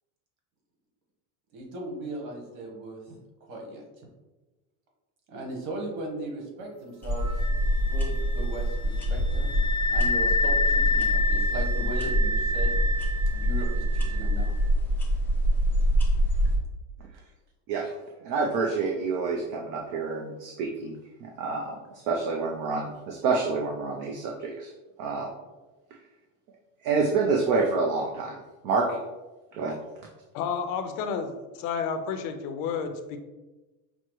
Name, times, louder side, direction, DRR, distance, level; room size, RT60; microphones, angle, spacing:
voice 1, 1.5-3.0 3.5-3.8 5.3-7.3 7.9-9.5 9.9-12.7 13.3-14.5, right 1 dB, 85° right, 0 dB, 1.4 m, -37 dB
sound 1, 7.0-16.6, equal, 5° left, 0.4 m, -25 dB
Wind instrument woodwind instrument, 7.2-14.6, left 3 dB, 35° right, 0.9 m, -29 dB
voice 2, 18.2-20.9 21.2-21.8 22.1-24.7 25.0-25.3 26.8-28.4 28.6-29.0 29.5-29.8, right 4 dB, 50° right, 0 dB, 0.6 m, -27 dB
voice 3, 30.3-33.2, left 6 dB, 55° left, 7 dB, 0.6 m, -31 dB
5.9 x 2.1 x 3.1 m, 1.1 s
supercardioid pair, 140°, 41 cm